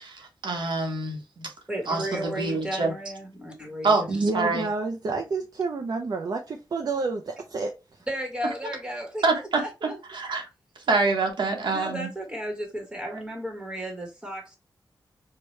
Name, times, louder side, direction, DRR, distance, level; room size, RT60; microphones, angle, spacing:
voice 1, 0.0-1.5 1.9-2.9 3.8-4.0 4.3-4.7 9.2-10.5 10.9-12.1 13.1-13.2, right 3 dB, 80° right, 1.0 m, -26 dB
voice 2, 1.7-4.2 8.1-9.2 9.6-10.0 11.7-14.6, equal, 10° right, 1.2 m, -34 dB
voice 3, 4.1-8.1, right 3 dB, 55° right, 0.5 m, -29 dB
4.6 x 2.2 x 3.1 m
wide cardioid pair, 110°, 8 cm